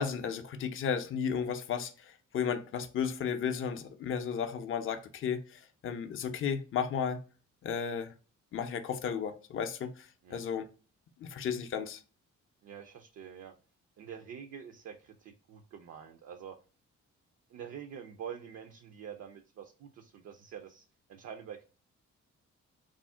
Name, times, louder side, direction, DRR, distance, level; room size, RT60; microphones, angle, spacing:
voice 1, 0.0-7.2 7.6-8.1 8.5-10.7 11.2-12.0, left 7 dB, 40° left, 0.4 m, -34 dB
voice 2, 12.6-13.5 14.0-16.6 17.5-21.6, right 8 dB, 55° right, 0.4 m, -46 dB
2.4 x 2.0 x 3.4 m
cardioid pair, 65°, 31 cm